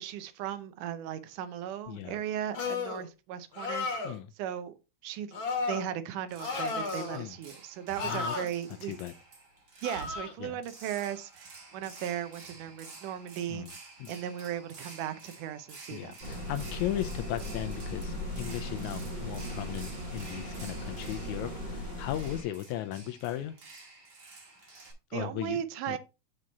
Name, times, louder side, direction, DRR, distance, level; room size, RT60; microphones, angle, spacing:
voice 1, 0.0-4.0 4.4-4.7 5.0-5.4 5.7-8.9 9.8-13.8 14.1-16.1 25.1-26.0, right 10 dB, 80° right, 2.2 m, -37 dB
voice 2, 1.9-2.2 4.0-4.3 7.1-7.3 8.1-8.3 8.9-9.1 10.4-10.6 13.5-13.7 14.0-14.1 15.9-23.6 25.1-25.6 25.9-26.0, left 13 dB, 80° left, 1.7 m, -37 dB
sound 1, 2.5-3.0 3.5-4.2 5.3-5.8 6.4-7.2 8.0-8.5 9.8-10.3, left 4 dB, 45° left, 2.1 m, -33 dB
sound 2, 6.3-24.9, right 3 dB, 35° right, 1.9 m, -50 dB
sound 3, 16.2-22.4, left 1 dB, 15° right, 1.9 m, -38 dB
7.6 x 4.8 x 4.0 m
omnidirectional pair, 3.7 m